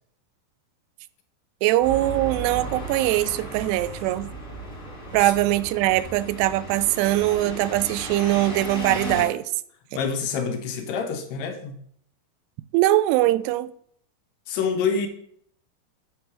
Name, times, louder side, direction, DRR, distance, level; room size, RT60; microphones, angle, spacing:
voice 1, 1.6-4.3 5.1-9.4 12.7-13.7, right 15 dB, 85° right, 2.6 m, -22 dB
sound 1, 1.8-9.2, right 1 dB, 15° left, 2.6 m, -35 dB
voice 2, 9.9-11.7 14.5-15.1, left 5 dB, 75° left, 2.2 m, -27 dB
8.0 x 5.1 x 6.2 m
omnidirectional pair, 4.7 m